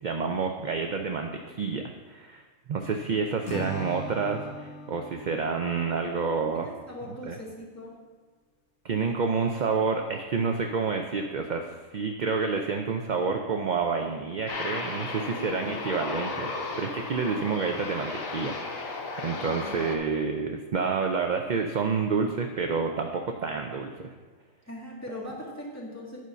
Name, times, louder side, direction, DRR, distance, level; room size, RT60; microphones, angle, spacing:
voice 1, 0.0-2.4 2.7-6.7 7.2-7.4 8.8-24.1, right 5 dB, 55° right, 4 dB, 0.5 m, -29 dB
voice 2, 2.7-3.3 6.5-8.0 15.5-15.8 17.2-17.4 19.3-19.8 24.7-26.2, left 1 dB, 10° left, -5 dB, 2.0 m, -41 dB
Acoustic guitar / Strum, 3.5-6.7, equal, 60° left, 1.4 m, -40 dB
Aircraft, 14.5-20.0, left 3 dB, 80° left, 1.4 m, -35 dB
9.4 x 5.3 x 5.6 m, 1.4 s
omnidirectional pair, 1.4 m